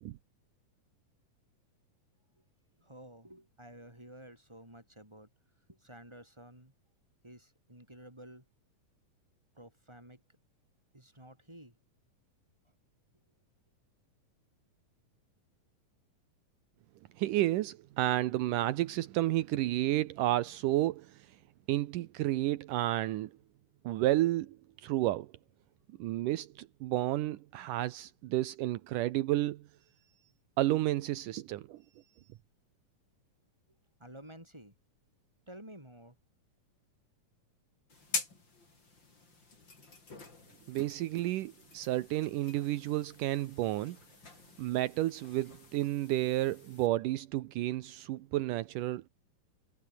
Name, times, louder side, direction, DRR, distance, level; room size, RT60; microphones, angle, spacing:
voice 1, 2.8-5.3 5.7-6.7 7.2-8.5 9.6-10.2 10.9-11.7 34.0-34.7 35.5-36.2, right 1 dB, 5° right, 8.0 m, -52 dB
voice 2, 17.2-21.4 21.7-23.3 23.8-24.6 24.8-25.3 26.0-29.7 30.6-31.8 40.7-44.0 44.6-49.1, right 15 dB, 80° right, 2.4 m, -31 dB
sound 1, 37.9-46.9, left 3 dB, 35° left, 5.6 m, -45 dB
omnidirectional pair, 3.8 m